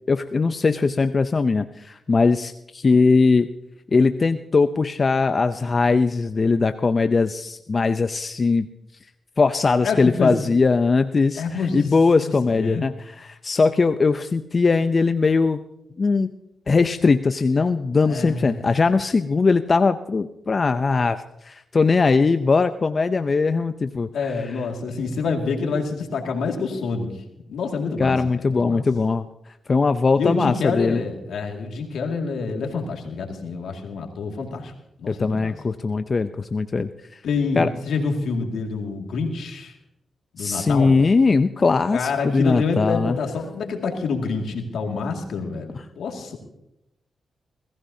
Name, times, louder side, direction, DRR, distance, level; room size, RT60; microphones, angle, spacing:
voice 1, 0.1-3.5 3.9-8.7 9.4-15.6 16.0-16.3 16.7-24.4 28.0-29.3 29.7-31.0 35.1-36.9 37.6-37.7 40.4-43.2, left 4 dB, 45° left, 10 dB, 0.5 m, -20 dB
voice 2, 9.8-10.4 11.4-11.9 12.2-12.8 18.1-18.6 24.1-27.1 27.5-28.8 30.2-34.7 35.0-35.5 37.2-39.7 40.3-40.9 41.9-46.4, left 4 dB, 80° left, 2 dB, 2.1 m, -27 dB
21.5 x 15.5 x 2.8 m, 0.85 s
cardioid pair, 55°, 0 cm